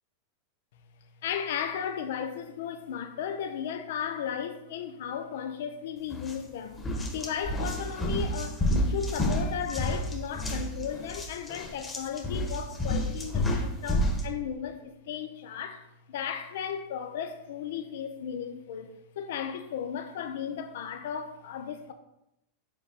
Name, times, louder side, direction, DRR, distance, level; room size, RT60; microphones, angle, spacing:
voice 1, 1.2-6.9 7.1-21.9, left 8 dB, 70° left, 0.7 m, -35 dB
sound 1, 6.1-6.3 6.7-14.3, equal, 20° left, 1.4 m, -30 dB
5.5 x 5.3 x 4.8 m
hypercardioid pair, 120°, 0 cm